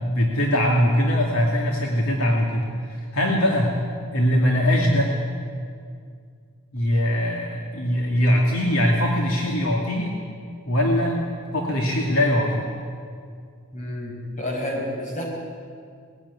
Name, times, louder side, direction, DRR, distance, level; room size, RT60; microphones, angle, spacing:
voice 1, 0.0-3.7 4.1-5.1 6.7-10.1 10.7-11.2 11.5-12.7, equal, 70° left, -1 dB, 2.5 m, -21 dB
voice 2, 13.7-15.2, left 1 dB, 35° left, -1 dB, 5.8 m, -30 dB
20.5 x 16.0 x 9.7 m, 2.2 s
head